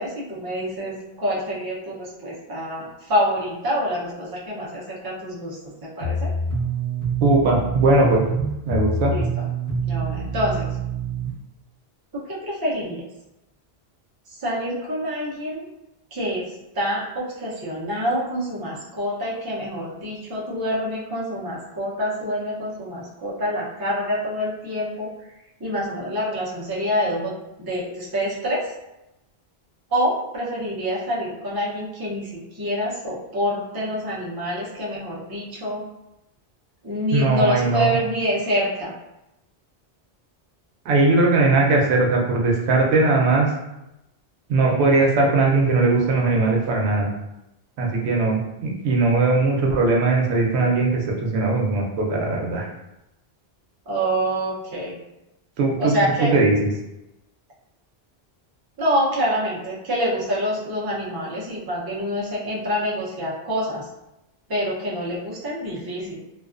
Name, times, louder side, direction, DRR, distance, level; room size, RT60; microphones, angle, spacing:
voice 1, 0.0-6.3 9.1-9.5 9.9-10.8 12.1-13.0 14.3-15.6 16.1-25.1 25.6-27.3 27.6-28.7 29.9-35.8 36.8-38.9 53.9-55.0 55.8-56.3 58.8-63.9 64.5-66.2, equal, 30° right, -6 dB, 0.5 m, -26 dB
sound 1, 6.0-11.3, right 4 dB, 35° left, 0.9 m, -26 dB
voice 2, 7.2-8.2 8.7-9.1 37.1-38.0 40.9-43.5 44.5-47.1 47.8-52.7 55.6-55.9 56.3-56.5, right 3 dB, 90° right, -1 dB, 0.8 m, -19 dB
2.3 x 2.2 x 2.4 m, 0.90 s
omnidirectional pair, 1.1 m